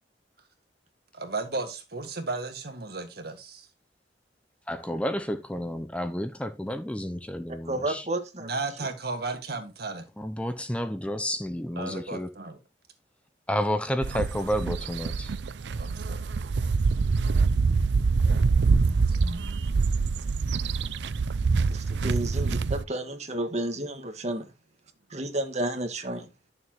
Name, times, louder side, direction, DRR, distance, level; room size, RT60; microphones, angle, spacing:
voice 1, 1.1-3.7 8.4-10.1 11.8-12.6 15.8-16.3 18.5-19.9, right 3 dB, 60° right, 1.9 m, -35 dB
voice 2, 4.7-8.1 10.2-12.3 13.5-15.3, equal, 5° left, 0.6 m, -30 dB
voice 3, 7.7-8.5 21.7-24.5 25.1-26.3, right 1 dB, 40° right, 1.7 m, -31 dB
sound 1, 14.0-22.8, right 4 dB, 80° right, 0.5 m, -25 dB
11.0 x 6.9 x 3.0 m
head